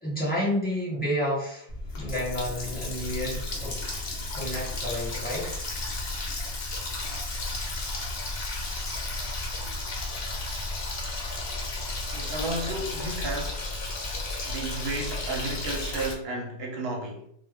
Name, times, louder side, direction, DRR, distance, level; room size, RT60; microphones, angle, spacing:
voice 1, 0.0-1.7 2.0-3.8 4.3-5.5, equal, 10° left, 1.1 m, -30 dB
Water tap faucet, 1.7-16.1, left 2 dB, 60° left, 0.8 m, -33 dB
voice 2, 12.1-13.7 14.4-17.3, right 2 dB, 65° right, 0.8 m, -33 dB
2.2 x 2.1 x 3.4 m
omnidirectional pair, 1.2 m